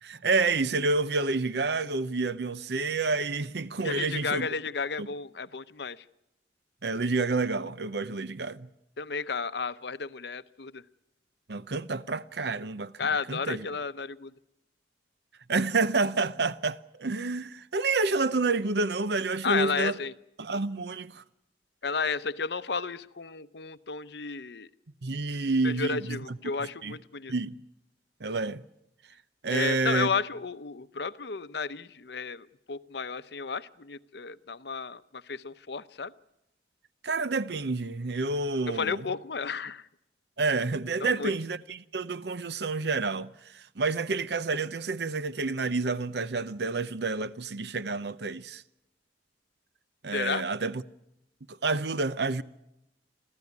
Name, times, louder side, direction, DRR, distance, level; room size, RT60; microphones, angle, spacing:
voice 1, 0.0-4.5 5.0-5.1 6.8-8.7 11.5-12.9 13.3-13.7 15.5-20.0 20.4-21.2 25.0-26.9 27.3-27.6 28.2-28.6 29.4-30.1 37.0-39.0 40.4-48.6 50.0-50.8 51.5-52.4, right 3 dB, 65° right, 0.8 m, -29 dB
voice 2, 3.8-6.0 9.0-10.8 13.0-14.3 19.4-20.1 21.8-24.7 25.6-27.3 29.5-36.1 38.7-39.9 41.0-41.4 50.1-50.4, left 5 dB, 65° left, 0.8 m, -32 dB
26.5 x 15.5 x 9.6 m
head